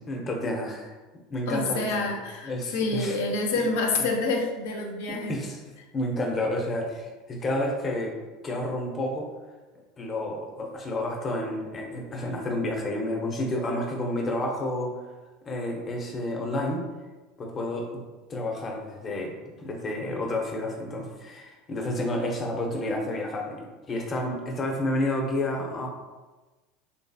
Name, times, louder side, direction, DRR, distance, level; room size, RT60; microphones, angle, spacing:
voice 1, 0.1-0.9 1.3-2.2 2.4-3.2 5.1-5.6 5.9-8.2 8.4-9.3 10.0-14.9 15.5-16.9 17.4-17.9 18.3-25.9, left 1 dB, 30° left, 0 dB, 0.7 m, -30 dB
voice 2, 1.5-5.4, left 3 dB, 75° left, 1 dB, 0.5 m, -27 dB
3.1 x 2.6 x 2.3 m, 1.2 s
hypercardioid pair, 95°, 0 cm